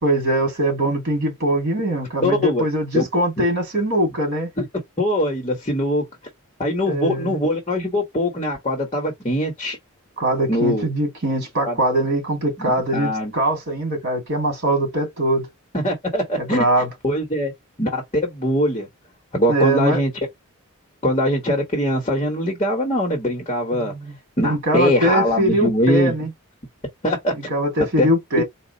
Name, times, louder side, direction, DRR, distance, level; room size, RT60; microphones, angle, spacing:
voice 1, 0.0-4.5 6.9-7.4 10.2-15.5 16.4-16.9 19.5-20.0 23.7-24.2 24.4-26.3 27.5-28.4, right 1 dB, 50° right, 2.4 m, -22 dB
voice 2, 2.2-2.7 2.9-3.1 4.6-4.7 5.0-6.0 6.6-9.8 10.5-10.9 11.6-11.8 12.7-13.3 15.7-16.7 17.0-17.5 17.8-18.9 19.3-20.1 21.0-23.9 24.4-26.1 27.0-27.5 28.0-28.1, left 1 dB, 30° left, 1.1 m, -22 dB
4.1 x 2.3 x 3.8 m
head